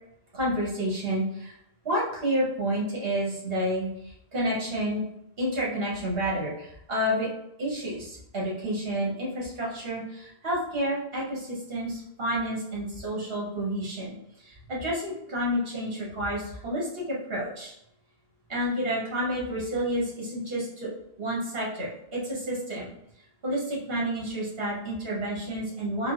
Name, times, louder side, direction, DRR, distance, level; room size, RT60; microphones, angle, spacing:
voice 1, 0.3-1.5 1.8-5.0 5.4-7.3 7.6-17.7 18.5-20.9 21.2-22.9 23.4-26.1, equal, 65° right, -5 dB, 1.4 m, -30 dB
3.9 x 2.2 x 2.5 m, 0.79 s
omnidirectional pair, 1.1 m